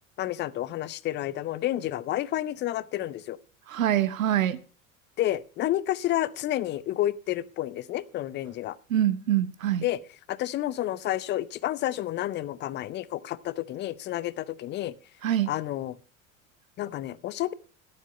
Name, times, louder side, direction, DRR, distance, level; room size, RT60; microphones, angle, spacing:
voice 1, 0.2-3.4 5.2-8.8 9.8-10.0 10.3-14.9 15.5-16.0 16.8-17.5, left 14 dB, 25° left, 0.5 m, -30 dB
voice 2, 3.7-4.6 8.9-9.8 15.2-15.5, right 11 dB, 75° right, 0.7 m, -24 dB
12.0 x 7.4 x 5.6 m
figure-of-eight pair, 70°, 41 cm